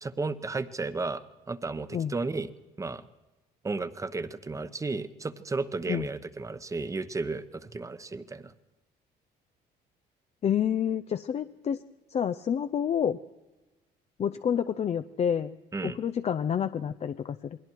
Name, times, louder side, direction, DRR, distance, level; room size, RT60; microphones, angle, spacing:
voice 1, 0.0-2.5 2.8-3.0 3.6-8.5 15.7-16.0, right 3 dB, 20° right, 12 dB, 1.0 m, -33 dB
voice 2, 10.4-11.8 12.1-13.2 14.2-15.5 15.8-17.6, left 8 dB, 40° left, 10 dB, 0.6 m, -28 dB
28.5 x 21.0 x 4.6 m, 1.1 s
cardioid pair, 110°, 17 cm